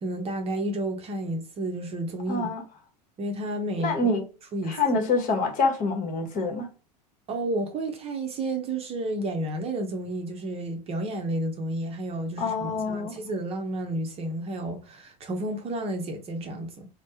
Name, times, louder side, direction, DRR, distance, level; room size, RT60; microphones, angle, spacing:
voice 1, 0.0-2.5 3.2-4.1 4.5-4.8 7.3-16.9, right 1 dB, 30° right, 0.7 m, -31 dB
voice 2, 2.3-2.6 3.8-4.2 4.7-6.7 12.4-13.1, left 3 dB, 40° left, 1.0 m, -26 dB
3.2 x 2.0 x 2.8 m
figure-of-eight pair, 85°, 21 cm